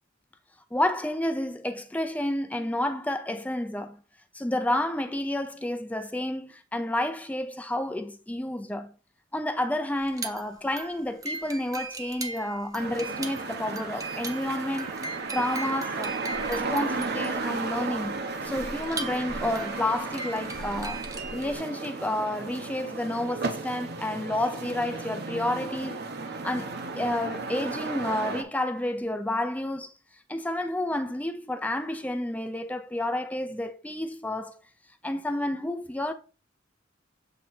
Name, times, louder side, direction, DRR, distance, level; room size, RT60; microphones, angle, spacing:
voice 1, 0.7-4.0 4.3-8.9 9.3-15.0 15.3-16.2 16.5-26.0 26.4-29.9 30.3-34.6 35.0-36.1, left 1 dB, 10° left, 0.5 m, -30 dB
sound 1, 10.0-21.6, right 3 dB, 20° right, 0.9 m, -39 dB
sound 2, 12.8-28.4, right 3 dB, 55° right, 0.8 m, -34 dB
7.6 x 3.0 x 4.2 m
head